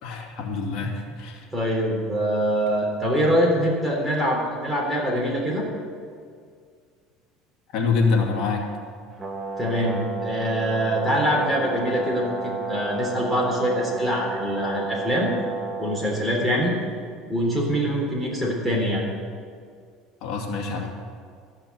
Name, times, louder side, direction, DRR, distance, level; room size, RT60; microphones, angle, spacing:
voice 1, 0.0-1.5 7.7-8.7 20.2-20.9, left 4 dB, 60° left, 0 dB, 2.5 m, -25 dB
voice 2, 1.5-5.6 9.6-15.3 15.8-16.8 17.3-19.0, equal, ahead, -3 dB, 3.6 m, -24 dB
Brass instrument, 9.2-16.2, right 4 dB, 15° right, 1.6 m, -31 dB
13.5 x 6.1 x 9.2 m, 2.1 s
cardioid pair, 130°, 0 cm